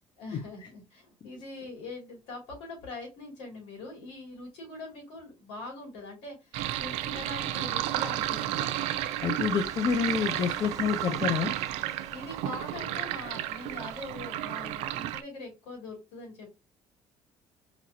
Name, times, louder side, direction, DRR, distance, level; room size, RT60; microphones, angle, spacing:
voice 1, 0.2-9.1 12.1-16.5, left 2 dB, 90° left, 0 dB, 2.4 m, -43 dB
Sink (filling or washing), 6.5-15.2, right 13 dB, 85° right, 0.4 m, -32 dB
sound 1, 7.2-14.1, right 5 dB, 30° right, 0.8 m, -49 dB
voice 2, 9.2-11.5, left 7 dB, 45° left, 5 dB, 0.6 m, -28 dB
4.2 x 2.9 x 2.7 m, 0.25 s
cardioid pair, 105°, 11 cm